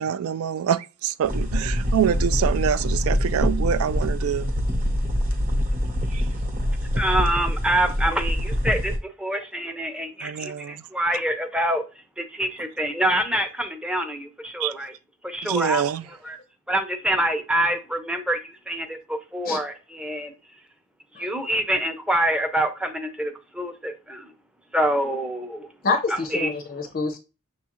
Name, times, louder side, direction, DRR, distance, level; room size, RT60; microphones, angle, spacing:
voice 1, 0.0-4.5 6.1-6.2 10.2-10.8 14.6-14.7 15.4-16.0, right 8 dB, 75° right, 0.3 m, -25 dB
sound 1, 1.2-9.0, equal, 40° right, 0.8 m, -25 dB
voice 2, 6.4-6.8 19.4-19.6 21.2-21.3 25.8-27.2, left 3 dB, 45° left, 0.5 m, -27 dB
voice 3, 7.0-8.9 9.2-11.8 12.2-14.9 15.2-15.9 16.2-16.4 16.7-20.3 21.2-24.3 24.7-25.7 26.3-26.5, right 1 dB, 5° right, 0.5 m, -26 dB
6.3 x 2.3 x 2.9 m
head